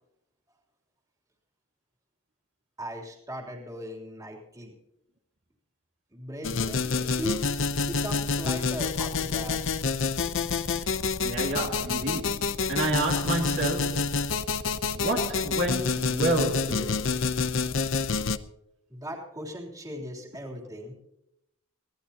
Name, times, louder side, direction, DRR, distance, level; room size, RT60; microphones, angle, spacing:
voice 1, 2.8-4.7 6.1-9.6 18.9-20.9, equal, 15° right, 3.3 m, -38 dB
sound 1, 6.4-18.4, left 4 dB, 60° left, 0.7 m, -28 dB
voice 2, 11.2-14.3 14.9-17.1, right 2 dB, 55° right, 2.5 m, -30 dB
23.0 x 17.5 x 2.9 m
head